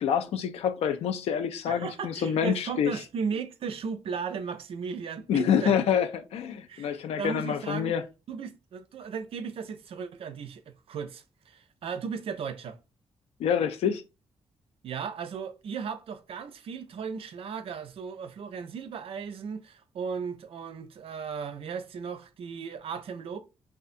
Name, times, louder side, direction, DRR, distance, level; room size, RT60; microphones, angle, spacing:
voice 1, 0.0-2.9 5.3-8.0 13.4-14.0, left 8 dB, 75° left, 0.4 m, -27 dB
voice 2, 1.7-5.7 6.7-7.9 8.3-12.8 14.8-23.4, right 6 dB, 65° right, 0.4 m, -36 dB
2.6 x 2.3 x 2.5 m
supercardioid pair, 55°, 10 cm